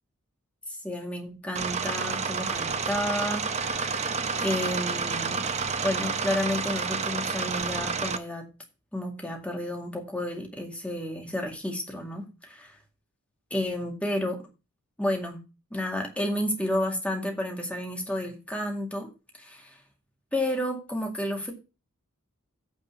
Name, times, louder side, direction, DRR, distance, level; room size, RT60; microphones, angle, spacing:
voice 1, 0.7-5.4 5.8-8.5 8.9-12.8 13.5-14.4 15.0-15.4 15.7-19.1 19.4-19.8 20.3-21.5, left 1 dB, 5° left, 2 dB, 2.0 m, -31 dB
sound 1, 1.6-8.2, right 5 dB, 30° right, 0.8 m, -29 dB
9.0 x 4.3 x 7.1 m, 0.30 s
head